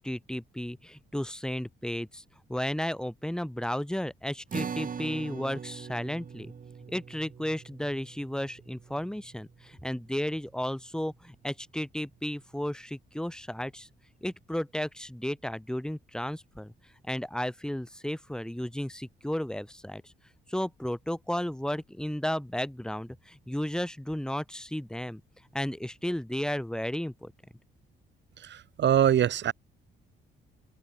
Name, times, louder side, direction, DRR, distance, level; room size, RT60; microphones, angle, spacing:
voice 1, 0.0-2.2 2.5-6.5 6.9-13.9 14.2-16.7 17.1-20.1 20.5-25.2 25.5-27.3, equal, 5° left, 3.7 m, -33 dB
sound 1, 4.5-11.1, right 6 dB, 45° right, 2.9 m, -42 dB
voice 2, 28.4-29.5, right 10 dB, 65° right, 3.0 m, -24 dB
open air
cardioid pair, 90°, 20 cm